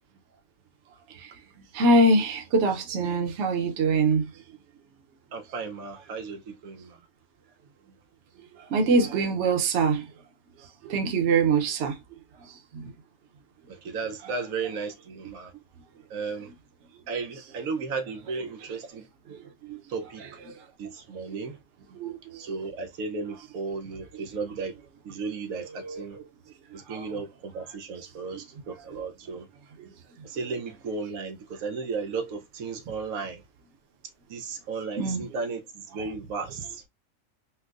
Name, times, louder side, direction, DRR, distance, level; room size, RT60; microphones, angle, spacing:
voice 1, 1.7-4.3 8.7-10.0 10.8-12.0 12.7-12.9 19.6-19.8 22.0-22.4 25.8-26.0 35.0-35.2, right 3 dB, 60° right, 1.0 m, -23 dB
voice 2, 5.3-7.0 13.7-15.5 16.1-16.5 17.1-19.1 19.9-20.3 20.8-21.6 22.4-24.8 25.0-26.2 26.7-29.5 30.2-33.4 34.3-36.8, right 4 dB, 90° right, 1.2 m, -34 dB
4.4 x 2.1 x 2.4 m
omnidirectional pair, 1.4 m